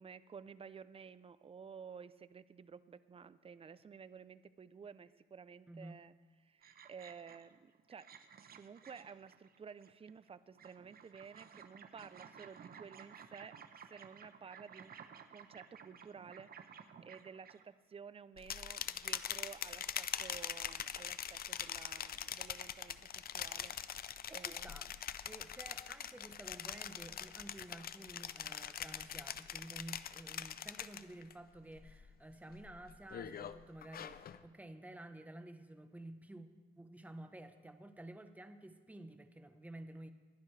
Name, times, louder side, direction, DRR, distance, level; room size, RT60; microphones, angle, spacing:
voice 1, 0.0-6.1 6.4-8.1 8.6-13.6 13.9-15.0 15.3-23.8 24.3-24.8, right 6 dB, 30° right, 15 dB, 0.5 m, -53 dB
sound 1, 6.6-7.6 7.9-10.3 10.6-17.6, right 7 dB, 50° right, 0.9 m, -56 dB
sound 2, 18.4-31.3 31.7-32.1 32.5-34.4, left 9 dB, 50° left, 0.6 m, -43 dB
voice 2, 24.3-24.9 25.3-36.5 36.8-40.1, right 1 dB, 5° right, 8 dB, 1.0 m, -52 dB
21.0 x 11.0 x 3.3 m, 1.4 s
cardioid pair, 90°, 20 cm